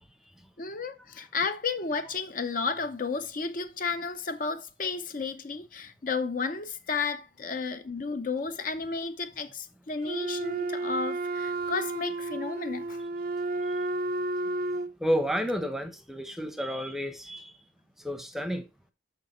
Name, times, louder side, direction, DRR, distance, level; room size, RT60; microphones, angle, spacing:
voice 1, 0.6-13.0, left 4 dB, 45° left, 0.6 m, -32 dB
Wind instrument woodwind instrument, 10.0-14.9, right 2 dB, 45° right, 0.4 m, -32 dB
voice 2, 15.0-17.6 18.0-18.7, equal, ahead, 0.7 m, -31 dB
6.6 x 5.9 x 4.2 m
head